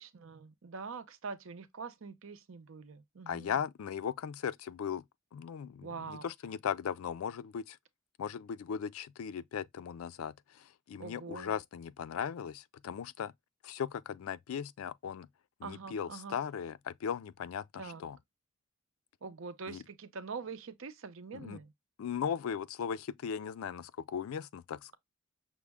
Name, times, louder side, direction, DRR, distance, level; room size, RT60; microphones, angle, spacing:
voice 1, 0.0-3.6 5.8-6.3 11.0-11.5 15.6-16.4 17.7-18.0 19.2-21.7, right 5 dB, 70° right, 0.6 m, -44 dB
voice 2, 3.3-5.0 5.3-7.8 8.2-10.3 10.9-13.3 13.6-15.3 15.6-17.6 18.0-18.2 19.7-19.8 21.3-21.6 22.0-25.0, left 7 dB, 90° left, 0.3 m, -37 dB
6.1 x 2.1 x 3.4 m
head